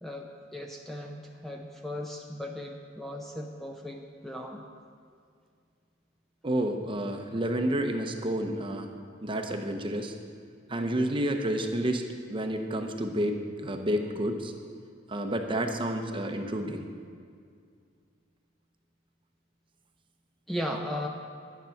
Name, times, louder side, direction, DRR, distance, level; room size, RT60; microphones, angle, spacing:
voice 1, 0.0-4.6 20.5-21.1, left 1 dB, ahead, 1 dB, 0.6 m, -37 dB
voice 2, 6.4-8.9 9.2-10.1 10.7-12.0 12.3-14.5 15.1-16.9, right 1 dB, 25° right, 5 dB, 0.8 m, -30 dB
10.5 x 9.5 x 5.8 m, 2.2 s
head